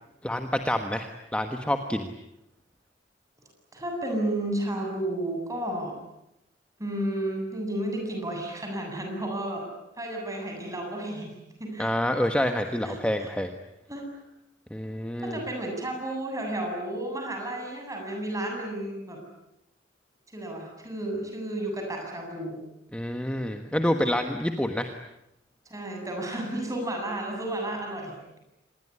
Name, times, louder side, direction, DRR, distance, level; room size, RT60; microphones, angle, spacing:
voice 1, 0.2-2.1 11.8-13.5 14.7-15.4 22.9-24.9, left 1 dB, 5° left, 6 dB, 1.4 m, -27 dB
voice 2, 3.7-6.0 6.8-9.6 10.0-11.3 11.6-11.9 12.9-13.3 13.9-14.1 15.2-19.2 20.3-22.6 25.7-28.4, right 1 dB, 20° right, 2 dB, 7.9 m, -32 dB
26.5 x 21.0 x 10.0 m, 0.85 s
head